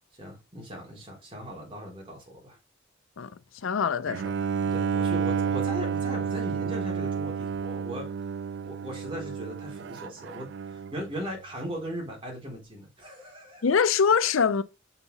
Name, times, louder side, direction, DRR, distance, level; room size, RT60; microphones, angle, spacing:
voice 1, 0.1-2.6 4.6-8.1 8.6-13.7, equal, 25° right, 3.8 m, -38 dB
voice 2, 3.6-4.3 13.6-14.6, left 6 dB, 80° left, 0.5 m, -23 dB
Bowed string instrument, 4.1-11.1, right 6 dB, 60° right, 0.4 m, -30 dB
7.0 x 5.8 x 4.0 m
head